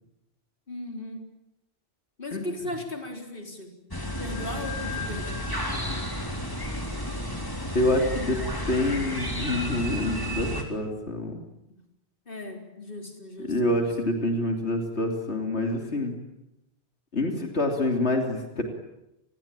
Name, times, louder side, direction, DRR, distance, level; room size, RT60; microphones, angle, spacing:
voice 1, 0.7-1.3 2.2-3.7 4.2-5.4 11.7-11.8 12.3-13.9, left 1 dB, 55° left, 3 dB, 4.3 m, -37 dB
sound 1, 3.9-10.6, equal, 20° left, 3.7 m, -32 dB
voice 2, 7.7-11.3 13.4-16.2 17.1-18.6, left 1 dB, 90° left, 3 dB, 3.5 m, -27 dB
30.0 x 20.5 x 9.0 m, 0.91 s
omnidirectional pair, 1.1 m